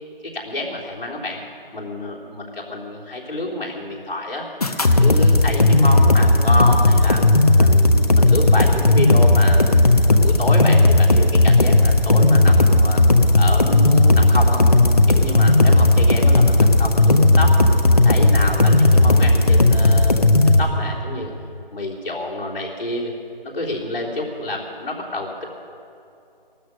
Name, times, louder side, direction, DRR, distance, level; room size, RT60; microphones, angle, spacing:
voice 1, 0.2-1.4 1.7-4.5 4.8-7.2 7.6-9.7 10.1-13.0 13.4-17.6 17.9-21.3 21.7-23.1 23.4-25.3, left 1 dB, 80° left, -4 dB, 3.5 m, -28 dB
sound 1, 4.6-20.6, left 2 dB, 40° left, 0.8 m, -14 dB
15.0 x 12.5 x 6.4 m, 2.6 s
figure-of-eight pair, 180°, 29 cm